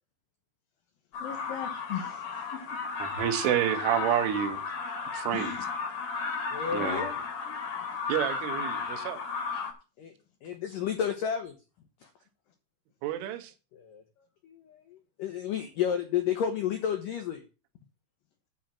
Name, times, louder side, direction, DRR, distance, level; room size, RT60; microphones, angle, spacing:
sound 1, 1.1-9.7, left 5 dB, 45° left, 2.0 m, -34 dB
voice 1, 1.2-2.8 5.3-5.6 6.8-7.1, left 8 dB, 65° left, 2.6 m, -38 dB
voice 2, 3.0-4.6 5.1-5.7 6.7-7.1 8.1-9.2 13.0-13.5, right 11 dB, 85° right, 3.6 m, -29 dB
voice 3, 6.5-7.1 10.0-10.1 10.4-11.5 13.8-14.0 14.4-14.8 15.2-17.4, left 8 dB, 90° left, 1.9 m, -31 dB
10.0 x 5.0 x 7.3 m
omnidirectional pair, 5.5 m